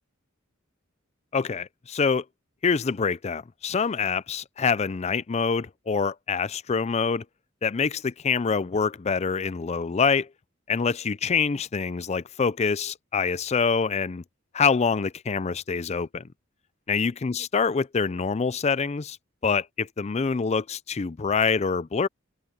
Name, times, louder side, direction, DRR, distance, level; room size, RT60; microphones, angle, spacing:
voice 1, 1.3-2.2 2.6-7.2 7.6-10.3 10.7-14.2 14.5-16.2 16.9-19.2 19.4-22.1, left 5 dB, 30° left, 0.4 m, -25 dB
head